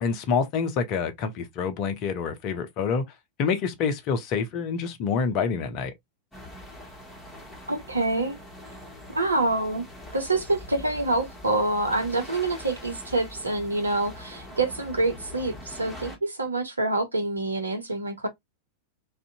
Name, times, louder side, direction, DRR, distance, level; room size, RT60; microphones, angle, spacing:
voice 1, 0.0-3.0 3.4-5.9, left 6 dB, 40° left, 0.6 m, -27 dB
sound 1, 6.3-16.2, left 1 dB, 5° left, 1.1 m, -43 dB
voice 2, 7.7-8.4 9.1-9.8 10.1-18.3, right 2 dB, 80° right, 0.7 m, -26 dB
2.5 x 2.1 x 2.5 m
figure-of-eight pair, 90°, 0 cm